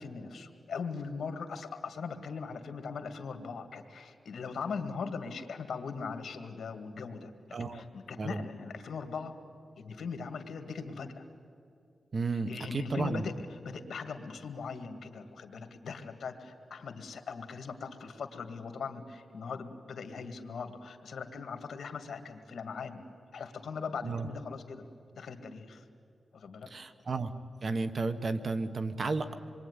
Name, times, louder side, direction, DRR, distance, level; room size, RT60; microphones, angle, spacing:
voice 1, 0.0-7.3 7.6-9.4 9.8-11.2 12.5-23.0 23.3-24.8 25.2-25.8 26.3-26.7, left 5 dB, 75° left, 6 dB, 2.2 m, -40 dB
voice 2, 7.5-7.8 8.2-8.4 12.1-13.3 24.0-24.3 26.7-27.3 27.6-29.3, right 3 dB, 45° right, 10 dB, 1.3 m, -33 dB
27.0 x 22.0 x 9.8 m, 2.4 s
wide cardioid pair, 105°, 0 cm